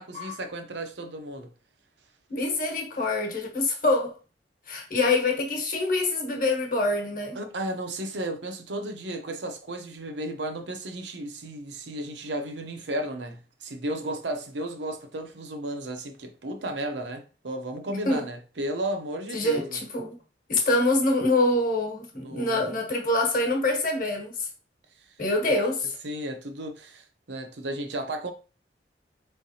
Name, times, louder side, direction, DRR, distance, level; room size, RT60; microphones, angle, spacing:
voice 1, 0.0-1.5 7.3-19.8 22.1-22.8 26.0-28.3, right 1 dB, 80° right, 0.7 m, -34 dB
voice 2, 2.3-4.1 4.7-7.4 18.0-18.2 19.3-20.2 20.5-24.5 25.2-25.9, left 2 dB, 50° left, 1.1 m, -25 dB
4.6 x 3.3 x 2.7 m
head